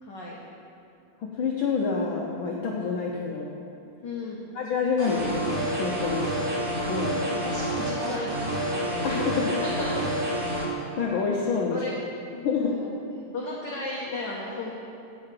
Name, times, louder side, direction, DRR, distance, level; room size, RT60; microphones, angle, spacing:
voice 1, 0.0-0.4 4.0-4.5 7.3-8.3 8.6-10.1 11.7-11.9 12.6-12.9 13.2-14.8, left 2 dB, 55° left, -4 dB, 1.3 m, -35 dB
voice 2, 1.2-3.5 4.5-6.5 6.9-7.4 9.0-9.5 11.0-11.8 12.4-12.8, left 5 dB, 80° left, -2 dB, 1.1 m, -28 dB
sound 1, 5.0-10.6, right 1 dB, 70° right, 4.8 m, -28 dB
15.0 x 5.0 x 7.6 m, 2.6 s
omnidirectional pair, 3.5 m